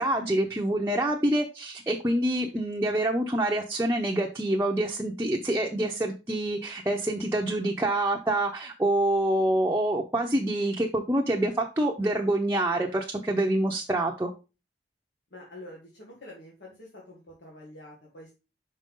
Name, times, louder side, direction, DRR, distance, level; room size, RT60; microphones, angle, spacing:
voice 1, 0.0-14.3, right 1 dB, 15° right, 0 dB, 0.7 m, -26 dB
voice 2, 15.3-18.3, left 1 dB, 85° left, -4 dB, 1.9 m, -47 dB
5.7 x 5.4 x 3.7 m, 0.29 s
head